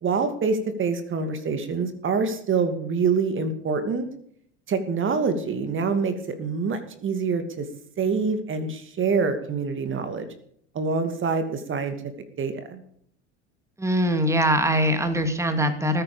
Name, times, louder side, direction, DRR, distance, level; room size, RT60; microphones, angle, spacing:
voice 1, 0.0-4.1 4.7-7.7 8.0-10.3 10.7-11.9 12.4-12.8, right 5 dB, 35° right, 9 dB, 2.6 m, -26 dB
voice 2, 13.8-16.0, equal, 10° right, 8 dB, 2.6 m, -22 dB
19.5 x 9.9 x 5.2 m, 0.63 s
hypercardioid pair, 85°, 36 cm